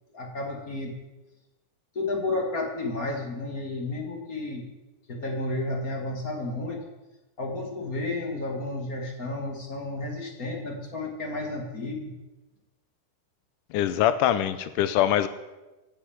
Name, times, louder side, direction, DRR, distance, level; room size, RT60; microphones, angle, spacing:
voice 1, 0.1-1.0 1.9-4.7 5.1-6.8 7.4-12.1, left 2 dB, 30° left, 2 dB, 1.9 m, -32 dB
voice 2, 13.7-15.3, left 11 dB, 90° left, 13 dB, 1.8 m, -23 dB
16.0 x 8.5 x 7.4 m, 1.1 s
omnidirectional pair, 4.5 m